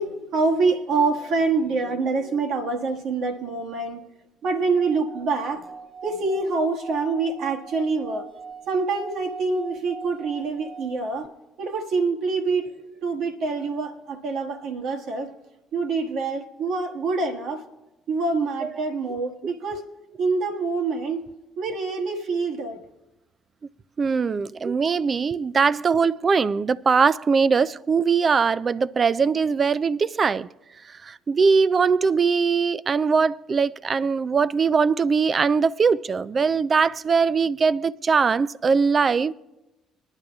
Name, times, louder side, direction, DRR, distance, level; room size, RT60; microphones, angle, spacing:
voice 1, 0.0-4.0 4.4-5.6 6.0-8.3 8.7-11.3 11.6-15.3 15.7-17.6 18.1-19.9 20.2-21.2 21.6-22.8, right 4 dB, 60° right, 1.4 m, -26 dB
Singing / Glass, 4.6-11.3, right 5 dB, 80° right, 1.1 m, -41 dB
voice 2, 24.0-30.5 30.9-39.3, right 5 dB, 40° right, 0.4 m, -21 dB
21.5 x 10.5 x 2.3 m
hypercardioid pair, 55°, 0 cm